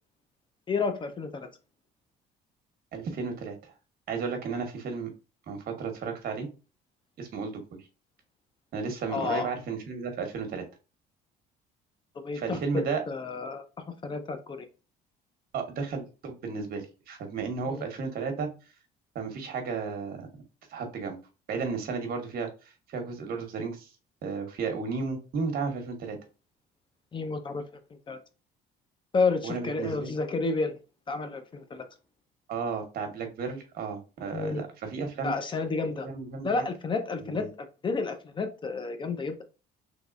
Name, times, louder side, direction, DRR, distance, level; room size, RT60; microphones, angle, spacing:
voice 1, 0.7-1.5 9.1-9.5 12.2-13.6 14.0-14.6 17.7-17.8 27.1-27.6 28.1-28.2 29.1-30.8 31.1-31.8 34.3-34.6 35.2-36.1 36.4-37.5 37.8-39.4, left 4 dB, 30° left, 8 dB, 0.7 m, -30 dB
voice 2, 2.9-3.7 4.1-5.1 5.5-6.5 7.2-7.6 8.7-10.6 12.3-13.0 15.5-18.5 19.1-20.3 20.7-21.2 21.5-23.9 24.2-26.2 29.4-30.1 32.5-35.3 36.0-36.6 37.2-37.5, right 5 dB, 60° right, 5 dB, 1.1 m, -33 dB
3.4 x 3.3 x 2.5 m, 0.31 s
cardioid pair, 110°, 17 cm